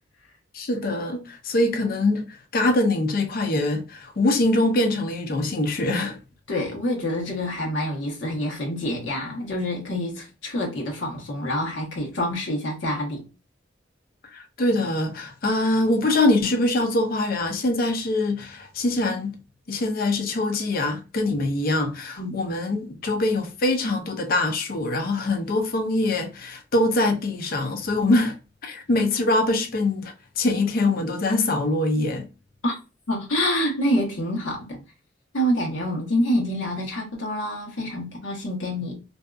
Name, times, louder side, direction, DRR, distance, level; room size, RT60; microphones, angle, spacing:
voice 1, 0.5-6.2 14.3-19.4 19.7-28.4 28.6-32.3, left 2 dB, 50° left, 0.5 m, -23 dB
voice 2, 6.5-13.3 22.2-22.4 32.6-32.7 33.1-34.8 35.3-39.0, equal, 85° left, 1.0 m, -27 dB
2.6 x 2.3 x 2.3 m
head